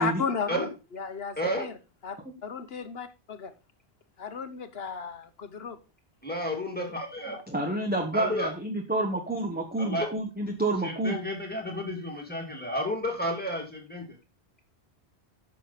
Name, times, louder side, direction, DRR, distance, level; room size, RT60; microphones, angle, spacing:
voice 1, 0.0-1.8 2.0-3.5 4.2-5.8, left 5 dB, 65° left, 1.3 m, -34 dB
voice 2, 1.4-1.7 6.2-7.4 8.1-8.5 9.8-10.1 10.8-14.1, equal, 10° left, 2.3 m, -31 dB
voice 3, 7.5-11.2, right 2 dB, 10° right, 1.2 m, -29 dB
10.0 x 6.5 x 4.0 m
omnidirectional pair, 1.1 m